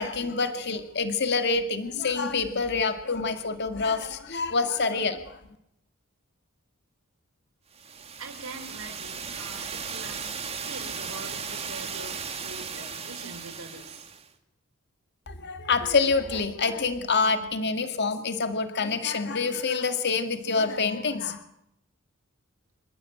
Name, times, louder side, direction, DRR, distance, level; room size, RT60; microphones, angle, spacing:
voice 1, 0.0-5.4 15.3-21.4, left 4 dB, 50° left, 8 dB, 1.9 m, -27 dB
sound 1, 7.7-14.3, right 6 dB, 30° right, 2.5 m, -36 dB
voice 2, 8.2-14.1, right 3 dB, 75° right, 3 dB, 5.3 m, -43 dB
28.0 x 15.0 x 9.0 m, 0.79 s
head